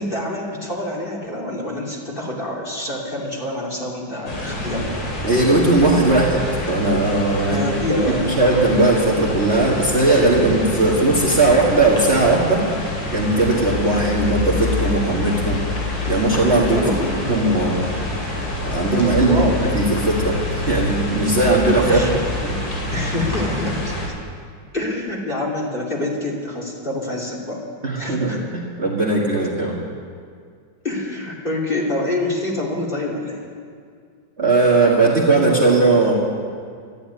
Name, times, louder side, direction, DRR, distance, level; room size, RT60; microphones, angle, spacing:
voice 1, 0.0-4.9 7.4-8.3 16.8-17.3 19.0-19.6 21.8-22.2 22.9-24.0 24.7-27.6 28.0-28.4 30.8-33.4, left 1 dB, 25° left, -2 dB, 2.8 m, -26 dB
sound 1, 4.3-24.1, left 2 dB, 90° left, 4.0 m, -26 dB
voice 2, 5.2-6.4 6.7-7.6 7.9-8.0 8.2-12.6 13.1-15.6 16.1-16.9 17.3-17.9 18.6-20.4 20.7-22.0 22.4-22.5 27.8-29.8 34.4-36.1, right 2 dB, 35° right, -4 dB, 1.8 m, -18 dB
13.0 x 11.0 x 9.5 m, 2.2 s
omnidirectional pair, 2.2 m